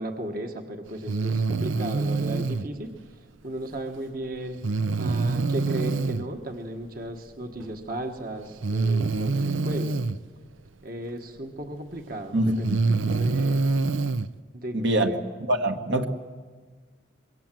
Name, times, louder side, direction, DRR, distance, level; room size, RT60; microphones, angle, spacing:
voice 1, 0.0-4.6 5.0-10.0 10.8-12.8 13.1-13.7 14.5-15.2, right 1 dB, 45° right, 5 dB, 1.5 m, -35 dB
Breathing, 1.1-2.7 4.6-6.2 7.6-7.7 8.6-10.2 11.7-11.8 12.5-14.3, right 3 dB, 85° right, 0.7 m, -25 dB
voice 2, 12.3-12.8 14.7-15.2 15.5-16.1, right 1 dB, 65° right, 4 dB, 1.6 m, -24 dB
24.5 x 23.0 x 7.7 m, 1.5 s
head